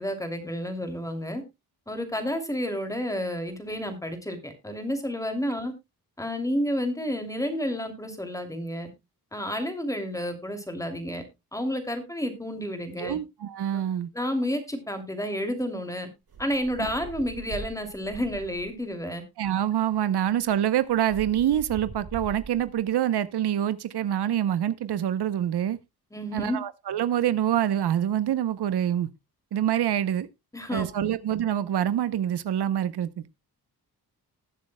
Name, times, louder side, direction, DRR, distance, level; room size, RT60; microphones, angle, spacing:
voice 1, 0.0-1.4 1.9-5.7 6.2-8.9 9.3-11.2 11.5-13.2 13.7-13.8 14.1-16.1 16.4-19.2 26.1-26.6 30.5-31.1, equal, 10° left, 2.7 m, -30 dB
voice 2, 13.0-14.1 19.4-25.8 26.3-29.1 29.5-30.3 30.7-33.3, right 10 dB, 85° right, 0.8 m, -26 dB
sound 1, 16.3-18.9 19.8-19.9 20.2-22.8, right 4 dB, 65° right, 3.8 m, -42 dB
20.0 x 7.4 x 2.2 m
wide cardioid pair, 105°, 38 cm